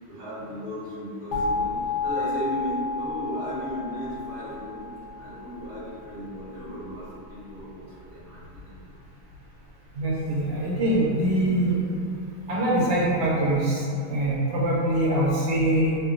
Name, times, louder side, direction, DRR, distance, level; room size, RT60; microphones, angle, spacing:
voice 1, 0.1-4.8 5.2-7.8 8.1-8.8 10.0-10.1 10.5-10.6, equal, 15° right, -11 dB, 0.6 m, -35 dB
sound 1, 1.3-6.1, left 3 dB, 75° left, 1.1 m, -31 dB
voice 2, 9.9-11.8 12.5-16.0, right 1 dB, 90° right, -5 dB, 1.3 m, -23 dB
2.9 x 2.1 x 2.5 m, 2.4 s
omnidirectional pair, 1.8 m